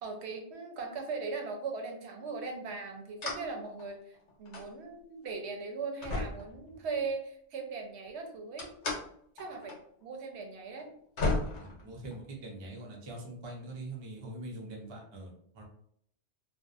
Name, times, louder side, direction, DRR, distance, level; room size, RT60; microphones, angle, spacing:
voice 1, 0.0-8.7 9.4-10.9, right 4 dB, 70° right, 3 dB, 0.8 m, -39 dB
sound 1, 3.2-3.5 3.8-4.7 5.3-5.4 6.0-7.1 8.6-9.0 9.4-9.8 10.0-10.1 10.8-10.9 11.2-12.4, left 2 dB, 70° left, 1.0 m, -34 dB
voice 2, 11.6-15.6, right 2 dB, 45° right, -1 dB, 0.3 m, -43 dB
2.5 x 2.0 x 2.3 m, 0.67 s
omnidirectional pair, 1.2 m